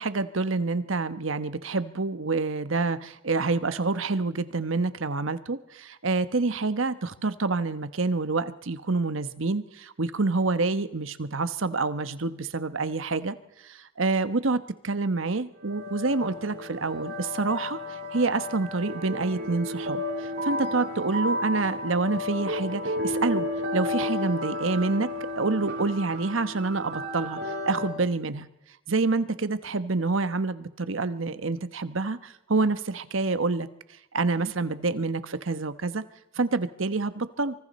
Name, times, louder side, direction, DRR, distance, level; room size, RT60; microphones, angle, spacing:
voice 1, 0.0-13.3 13.6-14.6 14.8-17.8 18.1-23.5 23.7-25.1 25.4-27.4 27.6-28.5 28.9-33.7 34.1-36.0 36.4-37.5, right 3 dB, 70° right, 12 dB, 1.0 m, -27 dB
sound 1, 15.6-28.0, left 1 dB, 50° right, 7.9 m, -32 dB
25.0 x 24.5 x 4.3 m, 0.92 s
head